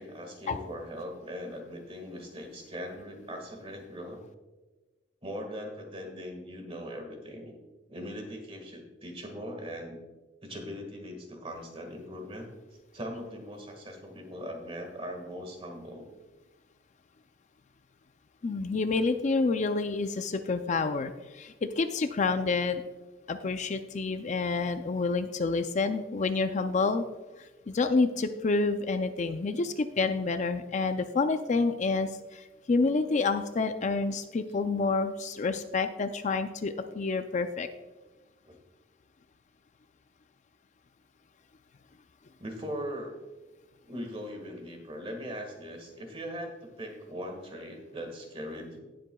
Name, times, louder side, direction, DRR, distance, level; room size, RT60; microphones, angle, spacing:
voice 1, 0.0-4.2 5.2-7.5 7.9-10.0 10.4-12.5 12.9-16.1 38.5-38.6 42.4-43.2 43.8-48.8, equal, 30° right, 3 dB, 1.8 m, -40 dB
voice 2, 18.4-22.8 23.3-27.0 27.4-37.7, left 3 dB, 40° left, 9 dB, 0.4 m, -28 dB
17.5 x 7.7 x 2.3 m, 1.2 s
head